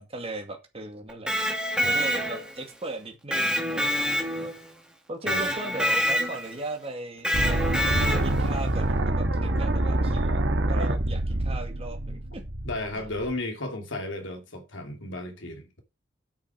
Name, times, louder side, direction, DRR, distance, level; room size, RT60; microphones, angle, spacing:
voice 1, 0.0-4.5 5.1-7.9 8.2-12.4 12.9-13.0, right 2 dB, 30° right, 2.2 m, -38 dB
Electric guitar, 1.1-2.6 3.3-4.7 5.3-6.5 7.2-8.5, equal, 5° right, 2.5 m, -26 dB
sound 1, 7.3-13.3, right 1 dB, 65° right, 1.6 m, -26 dB
voice 2, 12.6-15.8, left 2 dB, 70° left, 3.0 m, -34 dB
8.8 x 6.4 x 6.0 m
head